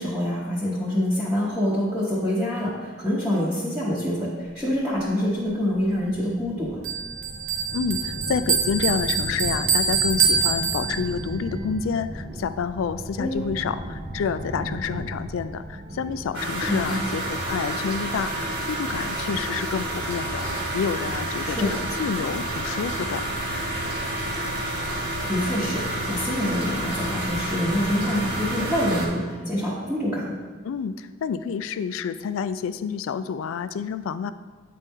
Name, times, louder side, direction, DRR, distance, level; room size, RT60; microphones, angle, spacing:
voice 1, 0.0-6.8 13.2-13.5 16.7-17.0 21.4-21.7 25.3-30.4, equal, 5° right, -9 dB, 1.0 m, -26 dB
sound 1, 5.7-17.7, right 1 dB, 30° right, 0.5 m, -36 dB
Bell, 6.8-11.4, right 5 dB, 80° right, 0.9 m, -25 dB
voice 2, 7.7-23.3 30.6-34.3, left 6 dB, 80° left, 13 dB, 0.3 m, -29 dB
sound 2, 16.3-29.1, right 1 dB, 55° right, 1.3 m, -29 dB
8.2 x 4.3 x 3.5 m, 1.4 s
head